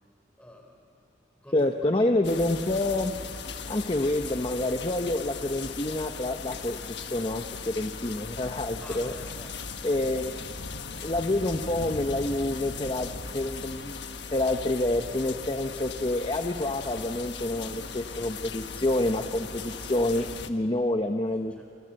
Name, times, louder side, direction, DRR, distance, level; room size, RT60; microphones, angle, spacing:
voice 1, 0.4-1.1 1.4-1.9 8.8-9.6 21.5-21.7, equal, 5° left, 2 dB, 4.5 m, -48 dB
voice 2, 1.5-3.1 3.7-9.1 9.8-10.5 11.0-21.6, left 1 dB, 25° left, 5 dB, 0.8 m, -28 dB
sound 1, 2.2-20.5, left 5 dB, 65° left, 1.4 m, -38 dB
29.0 x 26.5 x 7.7 m, 2.7 s
head